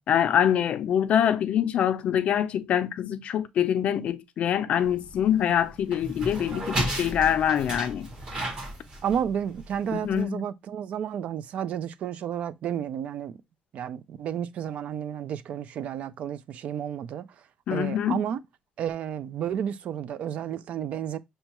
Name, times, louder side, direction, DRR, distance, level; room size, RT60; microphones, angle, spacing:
voice 1, 0.1-8.1 9.9-10.4 17.7-18.2, left 9 dB, 50° left, 0.4 m, -25 dB
sound 1, 4.8-10.2, right 1 dB, 35° right, 1.1 m, -34 dB
voice 2, 9.0-13.4 13.7-17.4 17.7-18.4 18.8-21.2, right 9 dB, 50° right, 0.3 m, -31 dB
6.4 x 2.2 x 2.9 m
cardioid pair, 160°, 3 cm